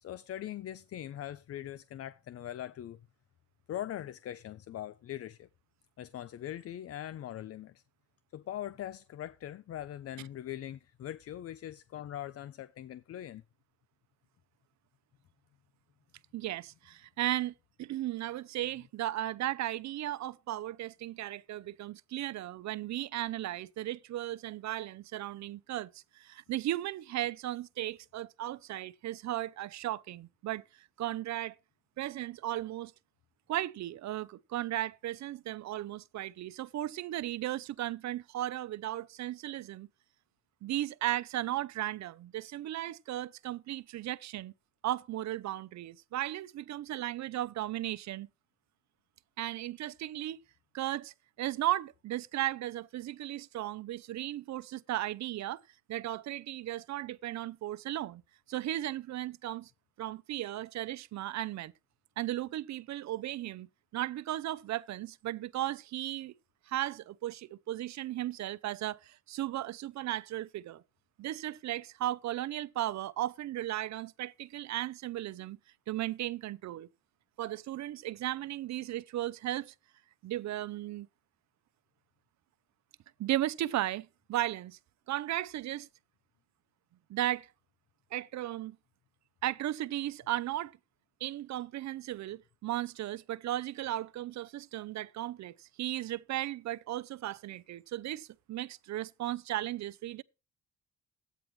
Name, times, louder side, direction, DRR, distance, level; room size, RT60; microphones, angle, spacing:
voice 1, 0.0-3.0 3.7-5.5 6.0-7.8 8.3-13.4, left 12 dB, 50° left, 0.5 m, -41 dB
voice 2, 16.3-17.5 17.8-31.5 32.0-32.9 33.5-39.9 40.6-44.5 44.8-48.3 49.4-50.4 50.7-55.6 55.9-58.2 58.5-59.7 60.0-61.7 62.2-66.3 66.7-70.8 71.2-75.6 75.9-76.9 77.4-79.7 80.2-81.1 83.2-84.8 85.1-85.9 87.1-87.5 88.1-88.8 89.4-90.7 91.2-100.2, right 14 dB, 65° right, 0.6 m, -36 dB
12.5 x 9.1 x 3.2 m
cardioid pair, 90°, 30 cm